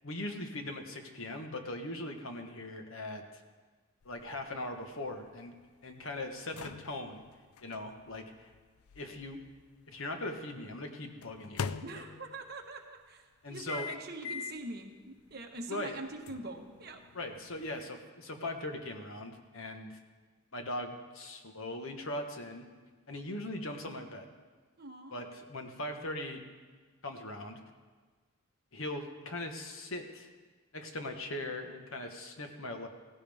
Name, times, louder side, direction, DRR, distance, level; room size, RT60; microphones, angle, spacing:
voice 1, 0.0-3.4 4.0-5.6 5.8-7.2 7.6-8.5 8.9-9.4 9.9-12.0 13.4-13.9 15.7-15.9 17.1-20.0 20.5-22.7 23.1-24.3 25.1-26.4 27.0-27.6 28.7-30.3 30.7-32.9, left 1 dB, 65° left, 5 dB, 1.4 m, -40 dB
sound 1, 4.0-10.1 11.2-12.5 13.7-14.7 15.2-15.3 16.3-17.9, left 6 dB, 85° left, 0.4 m, -44 dB
voice 2, 11.8-17.0 24.8-25.3, right 2 dB, 45° right, 2 dB, 1.4 m, -44 dB
17.0 x 16.0 x 3.6 m, 1.4 s
head